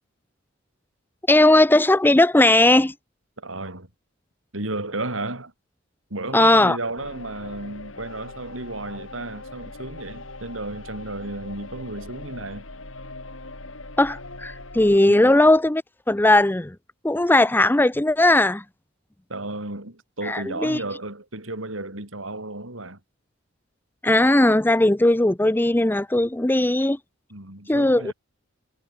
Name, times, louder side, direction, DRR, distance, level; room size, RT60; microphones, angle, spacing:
voice 1, 1.3-2.9 6.3-6.8 14.0-15.8 16.1-16.8 17.0-18.6 20.2-20.8 24.0-27.0 27.7-28.1, left 1 dB, 10° left, 0.6 m, -18 dB
voice 2, 3.4-3.9 4.5-5.5 6.1-12.7 15.1-15.4 19.3-23.0 27.3-28.1, right 2 dB, 85° right, 6.0 m, -33 dB
sound 1, 7.0-15.0, left 2 dB, 90° left, 7.1 m, -41 dB
head